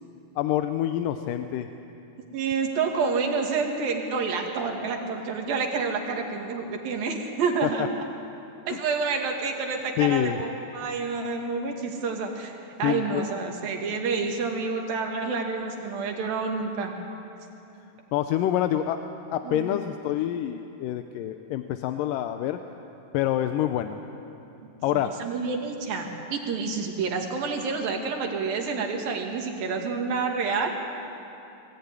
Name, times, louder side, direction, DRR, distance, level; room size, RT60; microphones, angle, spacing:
voice 1, 0.4-1.7 7.6-7.7 8.7-8.8 10.0-10.4 12.8-13.2 18.1-19.0 19.3-22.6 23.1-24.0 24.8-25.2, left 12 dB, 80° left, 8 dB, 2.3 m, -26 dB
voice 2, 2.3-7.9 8.7-12.5 12.8-17.0 19.4-19.8 24.6-30.7, right 4 dB, 80° right, 2 dB, 3.9 m, -28 dB
22.5 x 17.0 x 9.7 m, 3.0 s
omnidirectional pair, 4.1 m